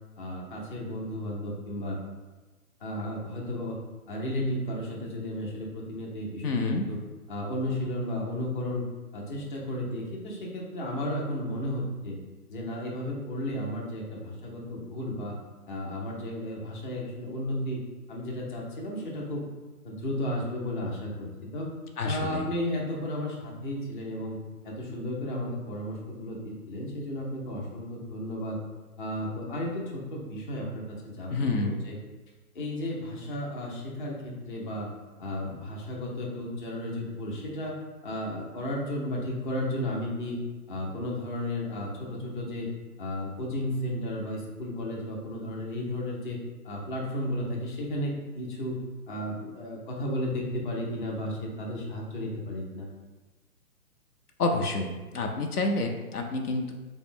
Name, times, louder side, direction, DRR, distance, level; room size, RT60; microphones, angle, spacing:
voice 1, 0.2-2.0 2.8-3.8 4.1-7.0 7.3-8.9 9.1-12.2 12.5-15.4 15.7-17.8 18.1-19.5 19.8-21.3 21.5-21.7 22.0-24.4 24.6-28.6 29.0-32.0 32.5-34.9 35.2-37.8 38.0-40.4 40.7-42.7 43.0-46.4 46.6-48.8 49.1-52.9, left 1 dB, 35° left, -2 dB, 0.6 m, -33 dB
voice 2, 6.4-6.8 22.0-22.5 31.3-31.8 54.4-56.7, left 3 dB, 75° left, 3 dB, 0.6 m, -28 dB
3.7 x 2.1 x 3.6 m, 1.2 s
figure-of-eight pair, 140°, 46 cm